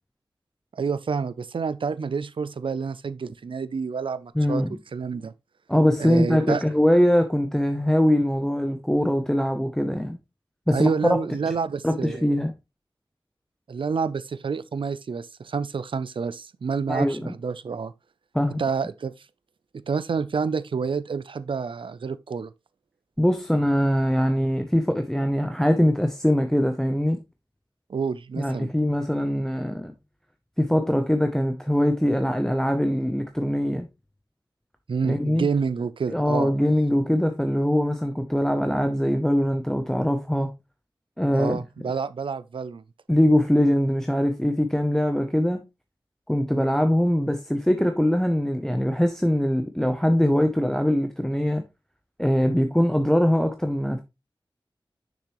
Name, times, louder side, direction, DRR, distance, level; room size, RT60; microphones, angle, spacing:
voice 1, 0.7-4.6 4.9-5.3 6.0-6.6 10.7-12.3 13.7-17.9 18.6-19.1 19.7-22.5 27.9-28.7 34.9-36.5 41.3-42.8, right 5 dB, 80° right, 0.4 m, -28 dB
voice 2, 4.3-4.7 5.7-10.2 10.7-11.2 11.8-12.5 16.9-17.3 18.3-18.6 23.2-27.2 28.4-29.9 30.6-33.9 35.0-35.5 36.1-40.6 41.2-41.6 43.1-45.6 46.3-51.6 52.2-54.0, equal, 5° left, 0.7 m, -22 dB
6.6 x 6.2 x 3.0 m
wide cardioid pair, 80°, 9 cm